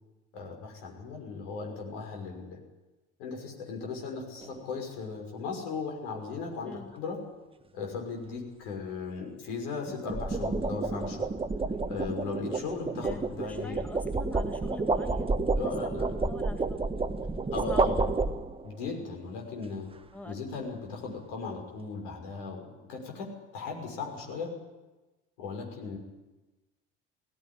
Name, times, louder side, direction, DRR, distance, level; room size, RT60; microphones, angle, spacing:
voice 1, 0.3-2.6 3.2-7.2 7.7-11.3 11.9-13.8 15.5-16.1 17.5-18.0 18.6-19.9 20.2-23.3 23.5-24.5 25.4-26.0, left 4 dB, 60° left, 1 dB, 6.1 m, -37 dB
sound 1, 4.4-4.7 9.9-18.8, right 3 dB, 15° right, 1.3 m, -30 dB
voice 2, 6.6-6.9 13.0-15.3 15.6-15.9 16.2-16.9 17.5-18.3 20.1-20.7, left 1 dB, 5° left, 5 dB, 1.8 m, -44 dB
19.0 x 17.0 x 10.0 m, 1.1 s
figure-of-eight pair, 60°, 37 cm